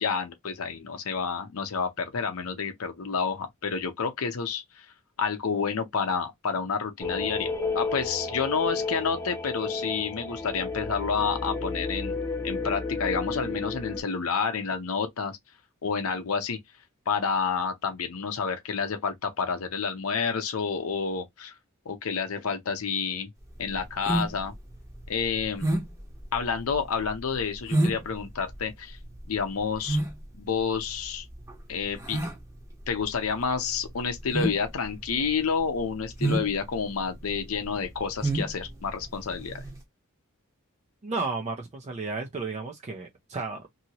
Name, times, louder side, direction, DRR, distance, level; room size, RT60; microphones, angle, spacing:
voice 1, 0.0-4.9 5.2-12.2 12.4-15.4 15.8-16.6 17.1-21.5 21.9-23.3 23.6-24.5 25.1-25.7 26.3-29.0 29.3-30.0 30.3-31.2 31.7-32.2 32.9-39.6, left 5 dB, 85° left, 0.7 m, -29 dB
sound 1, 7.0-14.0, left 3 dB, 15° left, 0.8 m, -32 dB
sound 2, 23.4-39.8, right 1 dB, 15° right, 0.9 m, -31 dB
voice 2, 41.0-43.8, right 3 dB, 35° right, 0.5 m, -33 dB
2.8 x 2.7 x 2.8 m
head